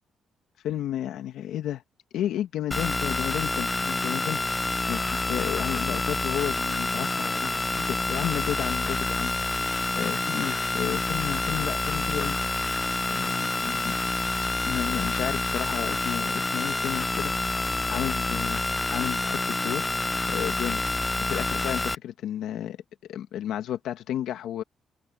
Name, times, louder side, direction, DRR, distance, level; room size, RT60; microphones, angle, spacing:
voice 1, 0.6-1.8 2.1-12.4 13.1-13.9 14.7-18.6 18.9-20.0 20.3-22.8 23.1-24.6, left 11 dB, 80° left, 1.9 m, -32 dB
sound 1, 2.7-22.0, left 2 dB, 20° left, 0.5 m, -28 dB
open air
cardioid pair, 90°, 0 cm